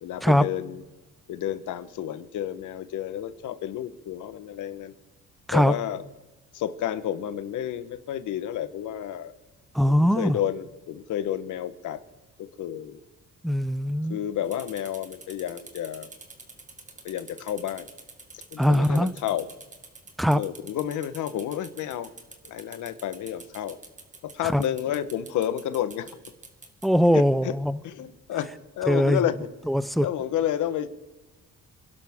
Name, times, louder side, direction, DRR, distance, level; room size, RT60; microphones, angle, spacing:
voice 1, 0.0-0.8 1.3-4.9 5.5-6.0 6.5-9.3 9.9-12.0 12.4-13.0 14.1-16.1 17.0-17.9 18.5-19.5 20.3-22.1 22.4-23.8 24.3-26.1 27.1-27.5 27.8-29.4 30.0-30.9, left 11 dB, 80° left, 12 dB, 1.3 m, -30 dB
voice 2, 9.7-10.4 13.4-14.2 18.6-19.1 20.2-20.4 24.5-24.6 26.8-27.8 28.9-29.2 29.7-30.1, equal, ahead, 17 dB, 0.6 m, -21 dB
sound 1, 14.4-26.9, right 3 dB, 25° right, 2.1 m, -46 dB
27.5 x 12.0 x 3.7 m, 1.2 s
cardioid pair, 90°, 30 cm